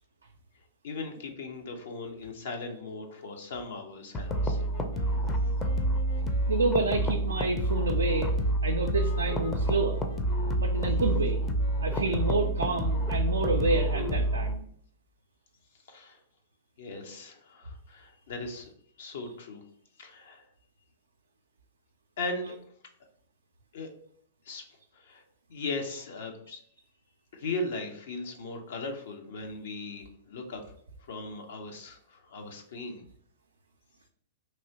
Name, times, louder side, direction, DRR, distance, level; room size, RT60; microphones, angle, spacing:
voice 1, 0.8-4.6 15.9-16.2 16.8-18.7 19.0-19.6 20.0-20.5 22.2-22.5 23.7-23.9 24.4-24.6 24.9-25.2 25.5-26.6 27.3-30.7 31.1-33.0, left 3 dB, 65° left, 3 dB, 0.6 m, -38 dB
sound 1, 4.1-14.5, right 1 dB, 20° left, 0.5 m, -28 dB
sound 2, 4.2-14.6, left 4 dB, 85° left, 1.2 m, -47 dB
voice 2, 6.5-8.3 8.6-10.0 10.6-11.4 11.8-14.6, right 3 dB, 85° right, 3 dB, 0.3 m, -29 dB
3.0 x 2.7 x 2.8 m, 0.63 s
hypercardioid pair, 110°, 0 cm